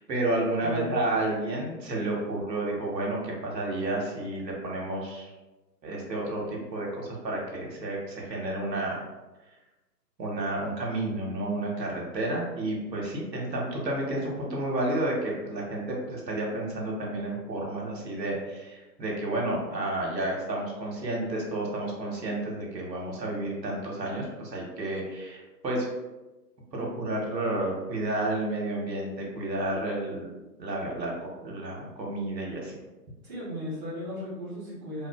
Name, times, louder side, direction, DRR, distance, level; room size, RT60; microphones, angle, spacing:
voice 1, 0.0-5.3 5.8-9.0 10.2-25.9 26.7-30.3 30.6-32.8, right 1 dB, 80° right, -2 dB, 0.9 m, -31 dB
voice 2, 0.6-0.9 33.2-35.1, equal, 25° right, -9 dB, 0.9 m, -35 dB
2.7 x 2.4 x 2.2 m, 1.1 s
figure-of-eight pair, 145°, 50 cm